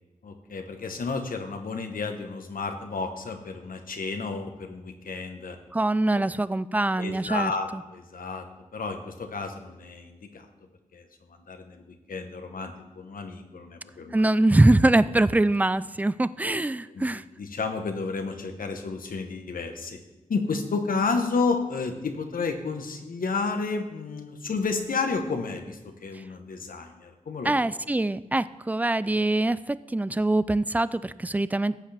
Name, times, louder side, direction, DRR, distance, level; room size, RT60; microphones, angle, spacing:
voice 1, 0.2-5.6 6.2-6.3 7.0-8.5 8.7-10.5 10.9-14.2 16.9-20.0 20.3-27.5, left 4 dB, 85° left, 5 dB, 1.1 m, -31 dB
voice 2, 5.7-7.5 14.1-17.2 27.4-31.8, right 2 dB, 10° right, 16 dB, 0.3 m, -23 dB
15.0 x 8.1 x 3.4 m, 1.1 s
wide cardioid pair, 80°, 14 cm